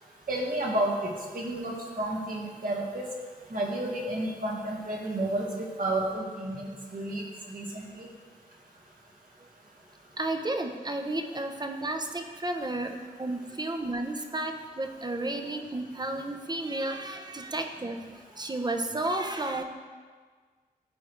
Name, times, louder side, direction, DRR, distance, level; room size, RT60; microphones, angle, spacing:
voice 1, 0.3-3.1 3.5-8.1, right 1 dB, 60° right, -3 dB, 1.9 m, -31 dB
voice 2, 10.2-19.6, right 2 dB, 25° right, 5 dB, 0.9 m, -32 dB
13.0 x 4.6 x 3.3 m, 1.5 s
cardioid pair, 65°, 16 cm